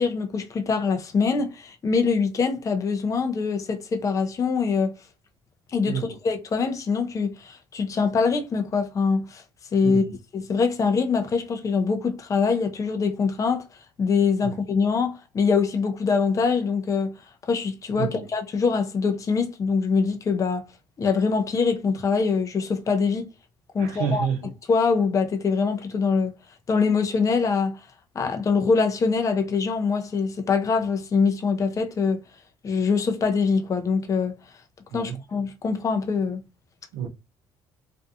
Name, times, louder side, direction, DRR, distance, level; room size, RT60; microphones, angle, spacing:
voice 1, 0.0-4.9 5.7-9.4 9.7-10.0 10.3-13.7 14.0-17.1 17.5-20.7 21.0-23.3 23.7-24.3 24.7-26.3 26.7-27.8 28.1-32.2 32.6-34.3 34.9-36.4, left 5 dB, 35° left, 0.5 m, -23 dB
voice 2, 23.8-24.4 34.9-35.2 36.9-37.1, right 7 dB, 80° right, 0.7 m, -29 dB
2.5 x 2.3 x 2.6 m
supercardioid pair, 80°, 10 cm